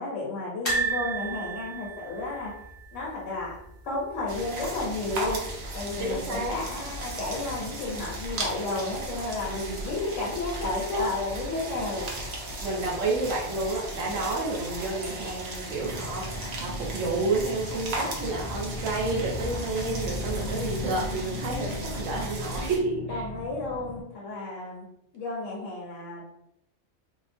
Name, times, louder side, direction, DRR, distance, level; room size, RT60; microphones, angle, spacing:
voice 1, 0.0-2.6 2.9-3.5 3.8-5.4 5.7-12.1 14.1-14.3 23.1-24.8 25.1-26.3, left 2 dB, 80° left, -5 dB, 1.1 m, -32 dB
sound 1, 0.7-3.7 4.0-4.2 4.4-4.5 5.8-6.3 6.8-6.9, right 4 dB, 25° left, 0.8 m, -32 dB
sound 2, 4.3-22.8, right 1 dB, 60° right, 0.8 m, -36 dB
voice 2, 6.0-6.6 9.5-9.9 12.6-23.2, right 3 dB, 85° right, -1 dB, 1.1 m, -30 dB
sound 3, 15.7-24.0, left 2 dB, 55° left, 0.3 m, -37 dB
2.7 x 2.2 x 2.5 m, 0.81 s
omnidirectional pair, 1.3 m